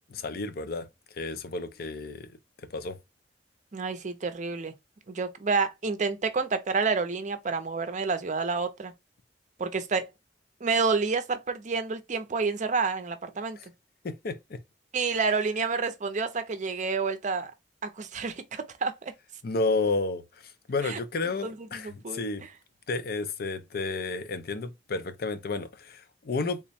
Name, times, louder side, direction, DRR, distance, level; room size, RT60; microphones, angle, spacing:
voice 1, 0.1-0.9 1.1-2.4 2.7-3.0 14.0-14.6 19.4-20.2 20.7-22.4 22.9-26.6, left 3 dB, 55° left, 0.5 m, -31 dB
voice 2, 3.7-4.7 5.1-8.9 9.6-10.1 10.6-13.6 14.9-17.5 17.8-19.1 20.8-21.0 21.4-22.5, right 4 dB, 45° right, 0.5 m, -29 dB
3.5 x 2.1 x 4.1 m
head